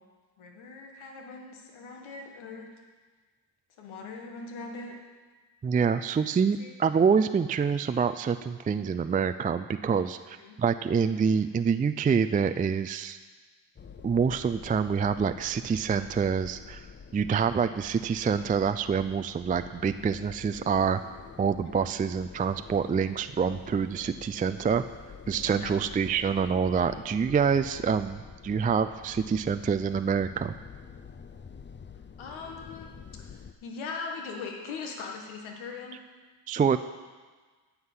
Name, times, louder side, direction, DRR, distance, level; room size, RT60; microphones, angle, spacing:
voice 1, 0.4-2.7 3.8-4.9 5.8-6.0 6.6-6.7 10.4-10.5 21.7-21.9 25.5-25.8 32.2-32.9 33.1-36.0, left 4 dB, 80° left, 1 dB, 1.7 m, -40 dB
voice 2, 5.6-13.2 14.0-16.9 17.1-21.0 21.4-24.8 25.3-30.5 36.5-36.8, right 6 dB, 20° right, 10 dB, 0.3 m, -26 dB
sound 1, 13.8-33.5, left 6 dB, 25° left, 0.6 m, -47 dB
9.5 x 5.8 x 8.0 m, 1.4 s
supercardioid pair, 60°, 47 cm